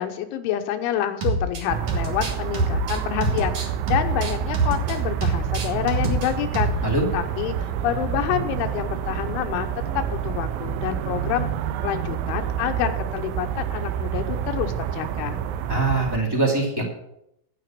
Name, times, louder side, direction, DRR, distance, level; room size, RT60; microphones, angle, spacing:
voice 1, 0.0-9.7 9.9-11.5 11.8-15.4, left 11 dB, 90° left, 7 dB, 3.4 m, -28 dB
sound 1, 1.2-1.6 1.9-4.9 5.2-6.3 6.5-6.8, right 2 dB, 65° right, 1.5 m, -25 dB
sound 2, 1.7-16.2, right 9 dB, 90° right, 3.2 m, -28 dB
voice 2, 15.7-16.8, right 2 dB, 15° right, -2 dB, 0.8 m, -22 dB
15.0 x 5.1 x 7.6 m, 0.82 s
omnidirectional pair, 5.4 m